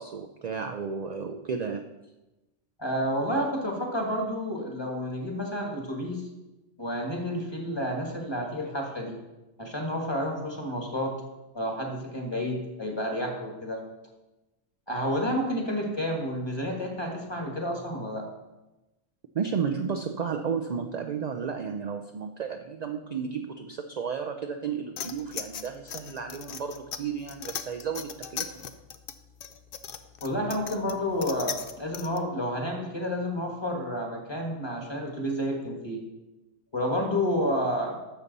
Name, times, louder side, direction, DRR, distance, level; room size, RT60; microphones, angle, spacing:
voice 1, 0.0-1.9 19.3-28.5, right 6 dB, 60° right, 5 dB, 0.4 m, -33 dB
voice 2, 2.8-6.2 6.8-9.2 9.6-11.1 11.5-13.8 14.9-18.3 30.2-36.0 36.7-38.0, equal, 20° left, 1 dB, 1.6 m, -30 dB
sound 1, 25.0-32.2, left 8 dB, 55° left, 0.7 m, -38 dB
11.0 x 6.9 x 4.1 m, 1.0 s
omnidirectional pair, 1.3 m